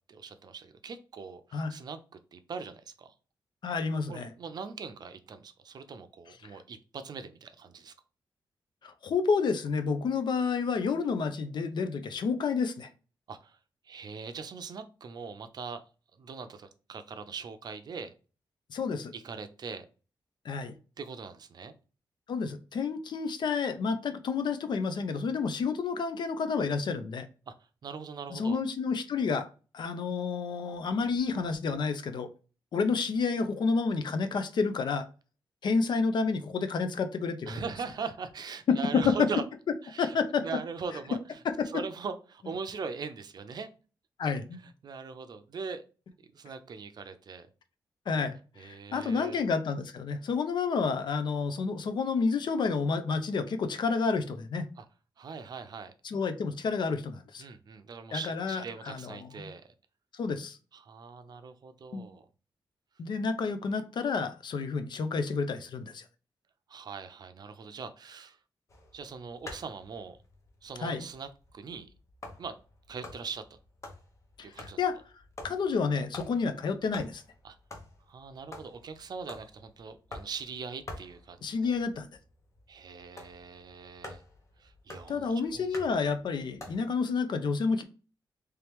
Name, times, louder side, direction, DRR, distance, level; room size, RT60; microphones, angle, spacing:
voice 1, 0.1-2.0 2.3-3.1 4.1-7.9 13.3-13.6 13.8-15.8 16.2-18.1 19.1-19.9 21.0-21.7 27.5-27.6 27.8-28.6 37.5-39.4 39.8-41.4 41.6-43.7 44.6-45.8 46.3-47.5 48.6-49.4 54.8-54.9 55.2-55.9 57.4-59.7 60.7-62.3 66.7-68.4 68.9-70.2 70.6-71.9 72.4-72.5 72.9-73.6 74.4-74.8 77.4-77.6 78.1-81.7 82.7-84.2 84.6-85.7, right 5 dB, 55° right, 9 dB, 0.5 m, -41 dB
voice 2, 3.6-4.3 8.8-12.9 18.7-19.1 20.4-20.7 22.3-27.3 28.3-29.5 29.7-32.3 32.7-35.0 35.6-37.6 38.7-38.8 40.0-40.4 41.4-41.5 44.2-44.6 48.1-54.7 56.0-57.4 58.1-59.5 60.1-60.6 61.9-62.1 63.0-66.0 70.8-71.0 74.4-75.0 75.4-77.2 81.4-82.1 85.1-87.8, left 5 dB, 65° left, 9 dB, 0.6 m, -30 dB
sound 1, 68.7-86.9, left 2 dB, 35° left, 0.9 m, -49 dB
3.3 x 3.0 x 3.4 m, 0.35 s
wide cardioid pair, 135°, 8 cm